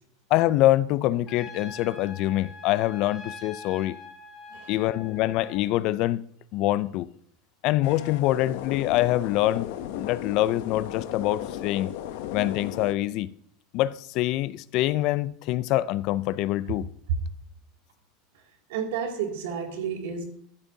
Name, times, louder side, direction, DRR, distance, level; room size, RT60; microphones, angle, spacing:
voice 1, 0.3-4.0 4.7-6.2 6.5-7.1 7.6-9.7 10.0-11.9 12.3-13.3 13.7-16.9, left 15 dB, 50° left, 0.4 m, -25 dB
Trumpet, 1.3-5.6, left 3 dB, 15° left, 2.6 m, -44 dB
sound 1, 7.8-12.9, left 11 dB, 75° left, 0.8 m, -36 dB
voice 2, 18.7-20.2, right 7 dB, 85° right, 2.4 m, -30 dB
13.5 x 8.3 x 2.7 m
supercardioid pair, 150°, 0 cm